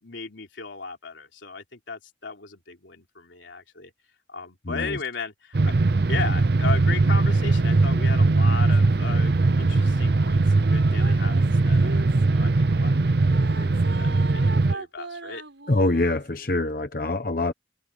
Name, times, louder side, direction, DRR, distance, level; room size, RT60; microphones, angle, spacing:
voice 1, 0.0-3.9 4.3-5.7 6.1-15.4, left 4 dB, 90° left, 3.4 m, -36 dB
voice 2, 4.7-5.0 15.7-17.5, left 2 dB, 50° left, 1.0 m, -24 dB
sound 1, 5.5-14.7, right 3 dB, 55° right, 0.6 m, -20 dB
sound 2, 7.2-8.7 9.4-12.6 13.3-16.3, right 3 dB, 85° right, 6.8 m, -40 dB
head